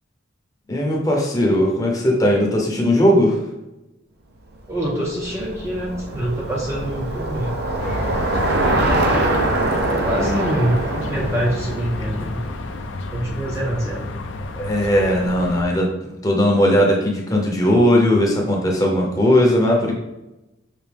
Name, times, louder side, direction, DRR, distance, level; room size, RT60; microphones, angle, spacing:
voice 1, 0.7-3.4 14.6-15.9 16.2-19.9, equal, 20° left, -1 dB, 0.8 m, -18 dB
voice 2, 4.7-7.5 8.6-9.3 10.0-12.4 13.1-14.1, right 1 dB, 15° right, -4 dB, 0.6 m, -25 dB
Bicycle, 4.7-13.0, right 2 dB, 55° right, 0.6 m, -24 dB
sound 1, 7.8-15.6, left 2 dB, 70° left, 0.4 m, -30 dB
5.9 x 2.6 x 3.4 m, 0.96 s
head